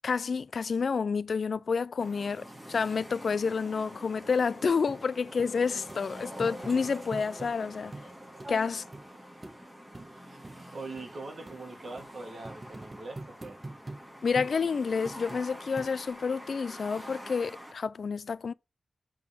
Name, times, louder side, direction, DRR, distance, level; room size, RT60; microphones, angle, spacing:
voice 1, 0.0-7.9 8.5-8.8 14.2-18.5, left 5 dB, 60° left, 0.3 m, -29 dB
sound 1, 2.0-17.7, equal, 5° right, 2.3 m, -46 dB
sound 2, 4.9-5.0 5.4-5.5 5.9-6.0 6.4-7.5 7.9-8.1 8.4-8.5 8.9-9.0 9.4-9.6 9.9-10.1 10.4-10.6 11.0-11.1 11.5-11.6 12.0-12.1 12.4-14.0 14.4-14.5 15.1-15.4 15.8-16.2 16.8-16.9, right 2 dB, 25° right, 1.2 m, -43 dB
voice 2, 8.4-8.9 10.0-13.6, right 3 dB, 55° right, 1.7 m, -43 dB
7.6 x 3.7 x 3.5 m
wide cardioid pair, 140°, 0 cm